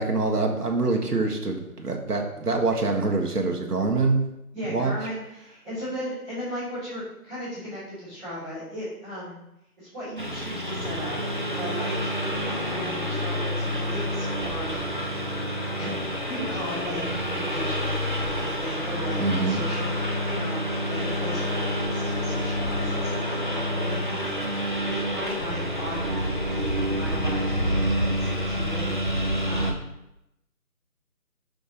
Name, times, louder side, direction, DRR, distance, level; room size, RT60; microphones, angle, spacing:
voice 1, 0.0-4.2 4.7-4.9 19.2-19.6, right 3 dB, 80° right, 1 dB, 1.6 m, -25 dB
voice 2, 4.5-9.4 9.8-11.2 11.5-14.8 15.7-29.0 29.4-29.9, equal, 5° right, -19 dB, 1.6 m, -36 dB
Engine, 10.2-29.7, equal, 35° right, 0.6 m, -28 dB
sound 1, 11.5-27.5, left 1 dB, 80° left, 1.9 m, -43 dB
6.7 x 5.2 x 4.0 m, 0.86 s
figure-of-eight pair, 165°, 46 cm